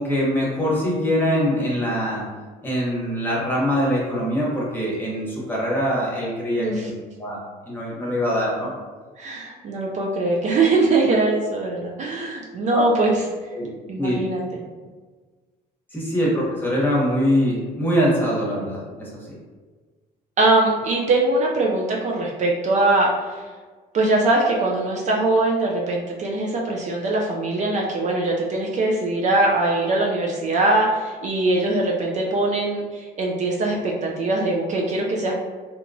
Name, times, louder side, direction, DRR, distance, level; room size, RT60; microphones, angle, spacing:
voice 1, 0.0-2.2 2.6-6.9 7.2-7.4 7.7-8.7 12.7-12.8 13.5-13.7 14.0-14.2 15.9-19.1, equal, 10° left, -5 dB, 0.9 m, -23 dB
voice 2, 6.6-6.9 9.2-13.2 13.9-14.4 20.4-23.4 23.9-35.3, right 2 dB, 45° right, -1 dB, 0.4 m, -22 dB
2.9 x 2.2 x 2.6 m, 1.4 s
cardioid pair, 110°, 17 cm